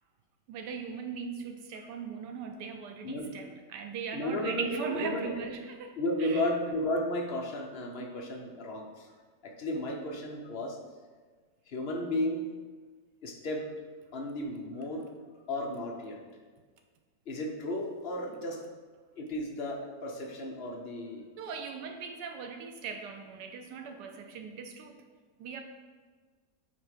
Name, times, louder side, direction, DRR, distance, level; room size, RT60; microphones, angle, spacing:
voice 1, 0.5-6.5 9.7-9.9 21.4-25.0 25.4-25.6, right 6 dB, 85° right, 5 dB, 1.2 m, -39 dB
voice 2, 4.1-5.3 6.0-9.1 9.4-10.8 11.7-12.5 13.2-13.7 14.1-15.1 15.5-16.2 17.3-18.6 19.2-21.2, left 1 dB, 45° left, 1 dB, 0.9 m, -34 dB
8.7 x 3.3 x 4.8 m, 1.5 s
omnidirectional pair, 1.8 m